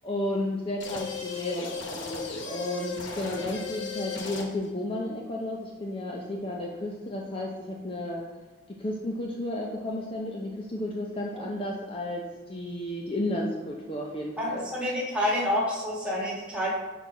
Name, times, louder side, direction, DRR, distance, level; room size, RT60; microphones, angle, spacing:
voice 1, 0.0-8.2 8.8-14.7, left 1 dB, 30° left, -2 dB, 0.5 m, -33 dB
sound 1, 0.8-4.7, left 4 dB, 70° left, 0.8 m, -36 dB
voice 2, 14.4-16.7, left 1 dB, 5° right, -5 dB, 1.3 m, -28 dB
5.5 x 4.2 x 4.7 m, 1.2 s
head